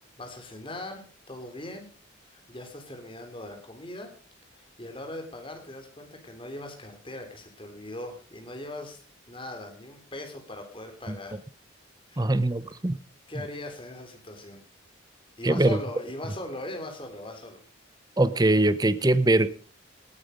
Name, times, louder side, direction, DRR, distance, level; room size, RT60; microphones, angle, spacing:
voice 1, 0.2-1.9 2.2-4.1 4.5-9.0 9.3-11.4 12.1-12.3 13.3-14.6 15.4-17.6, left 1 dB, 25° left, 3.3 m, -40 dB
voice 2, 12.2-13.0 15.4-15.8 18.2-19.5, right 2 dB, 20° right, 0.7 m, -22 dB
18.5 x 9.2 x 5.1 m
head